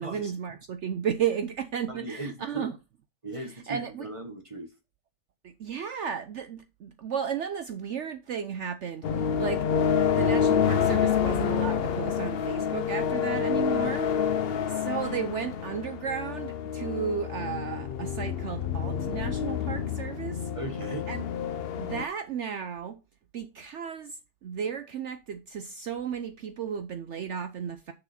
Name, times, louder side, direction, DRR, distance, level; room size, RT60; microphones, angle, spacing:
voice 1, 0.0-2.8 3.4-4.1 5.4-9.7 10.1-20.5 21.1-21.2 21.8-23.0 23.3-27.9, right 7 dB, 70° right, 0.6 m, -34 dB
voice 2, 1.9-2.7 3.2-4.7 20.6-21.1, right 2 dB, 25° right, 1.0 m, -38 dB
sound 1, 9.0-22.0, left 8 dB, 85° left, 0.5 m, -28 dB
6.6 x 6.0 x 4.2 m
omnidirectional pair, 1.8 m